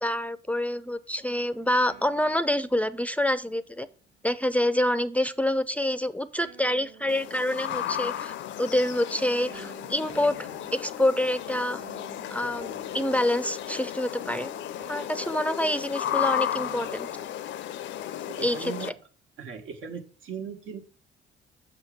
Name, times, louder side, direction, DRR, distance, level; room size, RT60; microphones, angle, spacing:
voice 1, 0.0-3.9 4.2-11.8 12.3-14.5 14.9-17.1 18.4-18.7, left 1 dB, 5° left, 14 dB, 0.4 m, -27 dB
sound 1, 1.2-4.1 6.4-17.5, right 6 dB, 55° right, 0.9 m, -50 dB
sound 2, 7.1-18.9, left 11 dB, 70° left, 0.5 m, -34 dB
voice 2, 18.2-19.0 19.4-20.8, right 6 dB, 85° right, 4 dB, 1.4 m, -38 dB
6.4 x 4.4 x 6.4 m, 0.40 s
cardioid pair, 90°, 20 cm